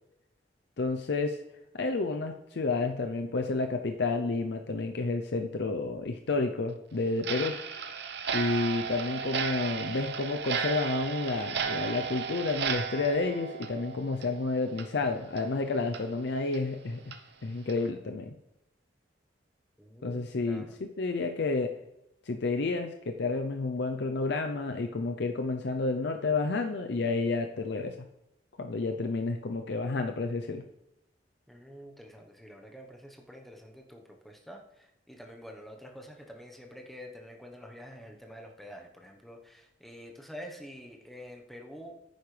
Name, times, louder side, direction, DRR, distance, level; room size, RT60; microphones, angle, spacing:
voice 1, 0.8-1.4 1.7-7.6 8.3-17.0 17.4-18.3 20.0-21.7 22.3-28.0 28.6-30.6, left 3 dB, 65° left, 5 dB, 0.6 m, -30 dB
Clock, 7.2-14.4 14.7-14.9 15.4-15.5 15.9-16.0 16.5-16.6 17.1-17.2 17.7-17.9, right 6 dB, 65° right, 0.8 m, -34 dB
voice 2, 19.8-20.7 31.5-42.1, equal, ahead, 1 dB, 1.0 m, -47 dB
10.5 x 9.5 x 3.3 m, 0.87 s
head